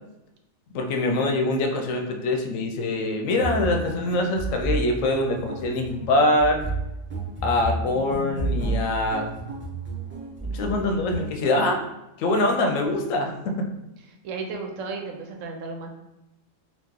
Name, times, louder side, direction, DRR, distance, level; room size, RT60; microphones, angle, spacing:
voice 1, 0.7-6.6 7.4-9.3 10.4-11.8 12.2-13.5, left 2 dB, 85° left, 3 dB, 1.0 m, -24 dB
sound 1, 3.4-11.3, right 2 dB, 15° right, 0.5 m, -31 dB
voice 2, 14.1-15.9, right 4 dB, 80° right, 2 dB, 1.0 m, -34 dB
2.9 x 2.4 x 3.6 m, 0.92 s
omnidirectional pair, 1.3 m